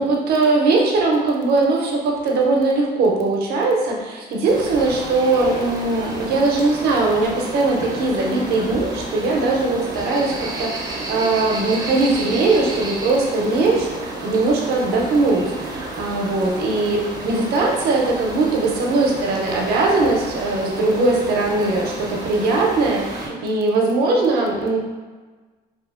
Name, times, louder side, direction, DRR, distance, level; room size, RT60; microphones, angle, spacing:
voice 1, 0.0-24.8, right 3 dB, 70° right, -1 dB, 0.6 m, -20 dB
sound 1, 4.5-23.3, right 2 dB, 25° right, 0.5 m, -31 dB
2.7 x 2.4 x 2.4 m, 1.3 s
cardioid pair, 110°, 17 cm